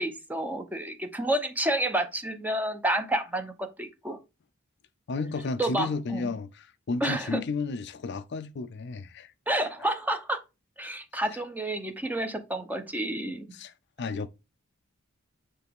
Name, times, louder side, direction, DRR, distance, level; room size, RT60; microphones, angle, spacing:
voice 1, 0.0-4.2 5.6-6.3 7.0-7.4 9.5-10.4 10.8-13.5, right 1 dB, 10° right, 0.8 m, -30 dB
voice 2, 5.1-9.7 13.5-14.3, left 4 dB, 55° left, 0.5 m, -33 dB
8.1 x 3.4 x 3.6 m
head